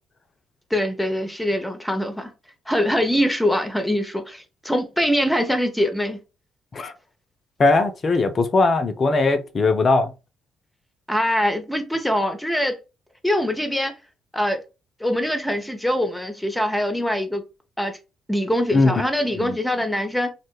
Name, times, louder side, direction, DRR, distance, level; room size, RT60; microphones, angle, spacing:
voice 1, 0.7-2.3 2.7-6.2 11.1-12.8 13.2-14.0 14.3-14.6 15.0-17.4 17.8-18.0 18.3-20.3, equal, 5° left, 0.6 m, -23 dB
voice 2, 7.6-10.1 18.7-19.0 19.4-19.6, left 3 dB, 40° left, 0.4 m, -19 dB
2.4 x 2.1 x 3.0 m
figure-of-eight pair, 45°, 0 cm